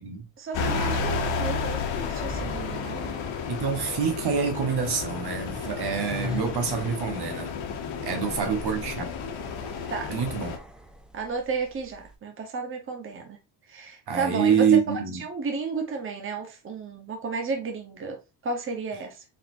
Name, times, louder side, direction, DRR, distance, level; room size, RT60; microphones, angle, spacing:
voice 1, 0.4-3.2 8.1-8.2 9.9-10.2 11.1-13.4 13.7-14.8 15.2-19.2, right 4 dB, 25° right, 1.0 m, -33 dB
sound 1, 0.5-10.6, left 5 dB, 65° left, 1.2 m, -31 dB
voice 2, 3.5-7.5 8.0-9.1 10.1-10.5 14.1-15.2, right 7 dB, 50° right, 1.2 m, -26 dB
sound 2, 4.1-12.2, left 2 dB, ahead, 0.5 m, -43 dB
4.1 x 3.6 x 2.7 m
cardioid pair, 105°, 49 cm